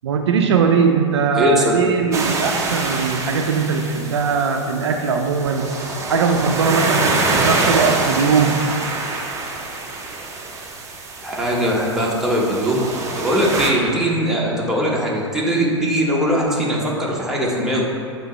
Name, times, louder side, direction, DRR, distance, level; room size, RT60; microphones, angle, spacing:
voice 1, 0.0-5.7 6.1-8.6, right 5 dB, 65° right, 4 dB, 0.4 m, -19 dB
voice 2, 1.3-1.7 11.2-12.8 13.2-17.8, equal, 5° right, -5 dB, 1.1 m, -20 dB
sound 1, 2.1-13.7, right 3 dB, 20° right, 0.6 m, -25 dB
7.3 x 3.0 x 4.3 m, 2.4 s
figure-of-eight pair, 100°, 16 cm